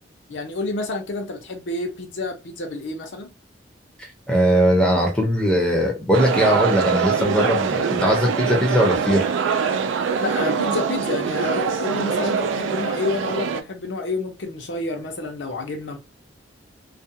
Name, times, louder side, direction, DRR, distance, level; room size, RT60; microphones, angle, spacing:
voice 1, 0.3-3.3 10.2-16.0, left 2 dB, 75° left, 0.7 m, -29 dB
voice 2, 4.3-9.3, equal, 5° left, 0.5 m, -19 dB
sound 1, 6.1-13.6, right 6 dB, 80° right, 0.3 m, -23 dB
2.4 x 2.1 x 2.7 m
head